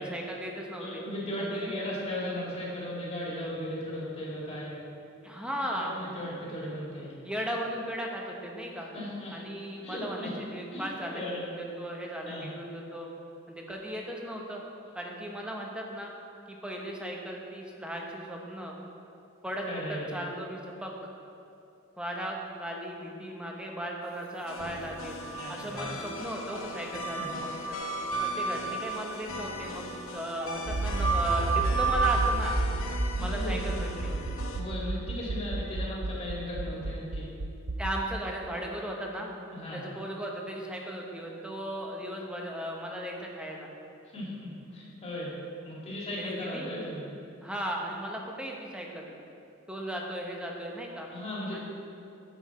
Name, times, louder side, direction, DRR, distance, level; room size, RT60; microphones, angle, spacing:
voice 1, 0.0-1.0 1.4-1.7 5.2-5.9 6.5-6.6 7.2-8.9 9.3-13.1 13.5-14.6 14.9-16.1 16.5-18.7 19.4-20.9 22.0-25.1 25.5-27.8 28.2-32.6 33.2-34.2 37.8-39.3 39.7-43.7 46.2-46.7 47.4-49.1 49.7-51.1 51.5-51.6, equal, 5° right, -1 dB, 0.9 m, -36 dB
voice 2, 0.8-4.8 5.7-7.1 8.9-9.4 9.8-10.3 10.7-10.9 11.1-11.5 12.2-12.5 19.7-20.2 25.3-25.9 27.1-27.3 33.1-33.6 34.5-37.3 39.5-39.8 44.1-45.3 45.6-47.0 51.1-51.6, left 1 dB, 30° left, -6 dB, 2.2 m, -36 dB
sound 1, 24.5-34.6, left 3 dB, 70° left, 0.8 m, -40 dB
sound 2, 24.9-25.9 26.2-26.3 26.5-32.5, right 5 dB, 50° right, 1.0 m, -32 dB
Accelerating revving vroom, 30.6-37.9, right 2 dB, 65° right, 0.6 m, -31 dB
9.2 x 7.1 x 4.2 m, 2.8 s
head